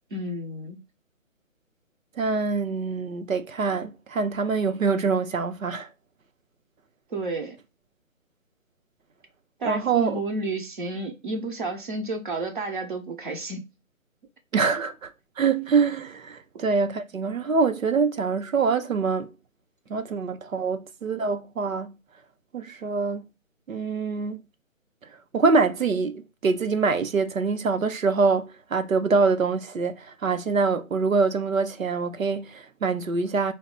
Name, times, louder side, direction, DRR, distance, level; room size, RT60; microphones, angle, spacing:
voice 1, 0.1-0.8 7.1-7.6 9.6-13.7, right 2 dB, 40° right, 1.0 m, -31 dB
voice 2, 2.2-5.9 9.6-10.2 14.5-15.1 15.4-19.3 19.9-22.0 22.5-23.2 23.7-24.4 25.3-33.5, right 4 dB, 80° right, 0.7 m, -25 dB
4.1 x 2.1 x 3.8 m
figure-of-eight pair, 145°, 40 cm